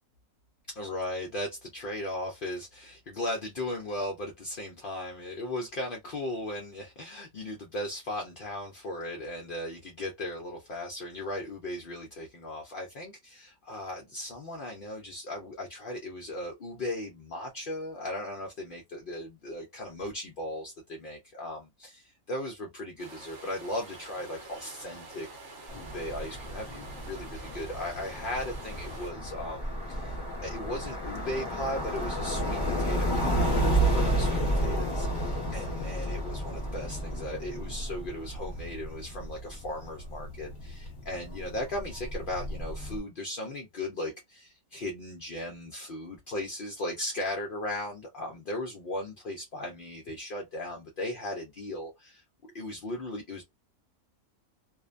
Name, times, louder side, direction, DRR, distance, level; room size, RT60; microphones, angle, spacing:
voice 1, 0.7-25.3 25.7-52.2 52.5-53.4, left 1 dB, 60° left, 0.5 m, -37 dB
sound 1, 23.0-29.1, right 2 dB, 60° right, 1.0 m, -47 dB
sound 2, 25.7-43.0, right 1 dB, 20° left, 0.9 m, -32 dB
2.5 x 2.1 x 2.4 m
omnidirectional pair, 1.5 m